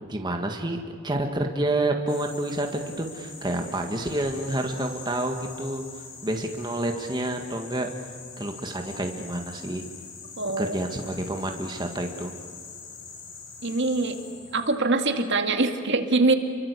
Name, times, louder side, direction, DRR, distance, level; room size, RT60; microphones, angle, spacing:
voice 1, 0.1-0.8 1.0-5.8 6.2-7.9 8.4-9.8 10.6-12.3, right 1 dB, 20° right, 3 dB, 1.7 m, -29 dB
sound 1, 2.1-14.8, left 5 dB, 65° left, 5.9 m, -44 dB
voice 2, 10.4-10.8 13.6-14.2 14.5-16.3, right 3 dB, 60° right, 5 dB, 2.1 m, -23 dB
29.0 x 23.5 x 8.3 m, 2.3 s
head